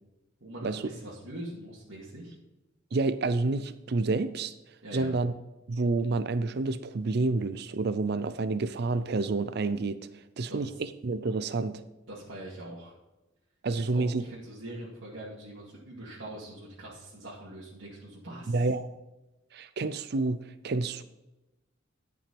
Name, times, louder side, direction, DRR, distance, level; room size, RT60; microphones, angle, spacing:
voice 1, 0.4-2.4 4.8-5.1 10.5-10.7 12.1-12.9 13.7-18.6, right 1 dB, 70° right, -7 dB, 2.3 m, -43 dB
voice 2, 2.9-4.5 4.9-5.3 5.7-10.0 10.4-11.8 13.6-14.2 18.5-18.9 19.5-21.0, right 3 dB, 55° right, 12 dB, 0.5 m, -29 dB
11.5 x 6.0 x 5.3 m, 1.0 s
head